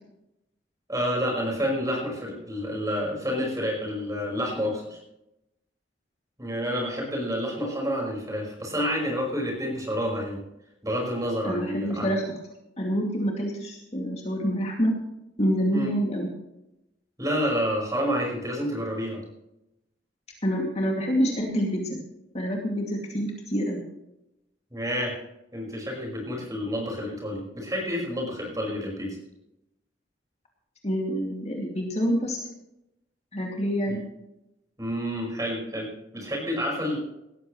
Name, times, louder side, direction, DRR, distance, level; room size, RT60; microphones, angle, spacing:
voice 1, 0.9-5.0 6.4-10.4 10.8-12.1 15.7-15.9 17.2-19.2 24.7-25.2 25.5-29.2 33.9-34.0 34.8-37.0, equal, 20° right, -1 dB, 5.2 m, -29 dB
voice 2, 11.4-12.3 12.8-14.9 15.4-16.3 20.4-21.9 22.3-23.8 30.8-32.4 33.3-34.0, equal, 35° left, 0 dB, 2.4 m, -27 dB
18.0 x 14.0 x 3.2 m, 0.88 s
head